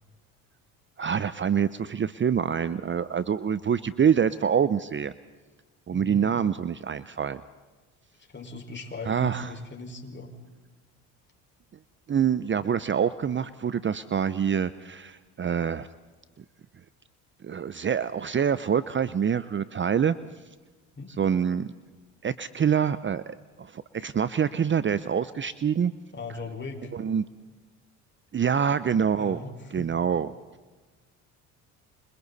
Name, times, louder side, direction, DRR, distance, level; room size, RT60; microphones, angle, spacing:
voice 1, 1.0-5.1 5.9-7.4 9.1-9.5 12.1-15.9 16.4-16.5 17.4-20.2 21.2-21.7 22.2-25.9 26.9-27.2 28.3-29.4 29.7-30.3, right 7 dB, 30° right, 15 dB, 0.8 m, -26 dB
voice 2, 5.9-6.3 8.3-10.3 21.0-21.2 26.1-26.9 29.2-30.0, left 3 dB, 30° left, 3 dB, 5.3 m, -38 dB
29.0 x 26.5 x 4.2 m, 1.3 s
supercardioid pair, 70°, 38 cm